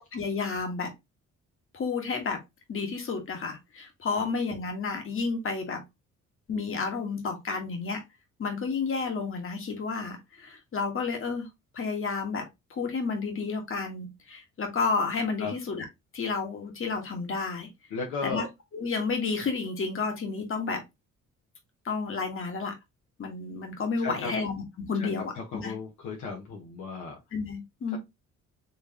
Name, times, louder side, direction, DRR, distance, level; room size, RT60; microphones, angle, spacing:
voice 1, 0.1-0.9 1.7-2.4 2.7-5.8 6.5-8.0 8.4-11.5 11.7-12.4 12.7-15.8 16.1-17.7 18.2-18.4 18.7-20.8 21.8-22.7 23.2-25.7 27.3-28.0, left 4 dB, 45° left, 1.5 m, -31 dB
voice 2, 17.9-18.5 24.0-24.4 25.0-27.2 27.9-28.0, left 4 dB, 80° left, 1.2 m, -35 dB
4.4 x 3.3 x 2.8 m
cardioid pair, 90°, 30 cm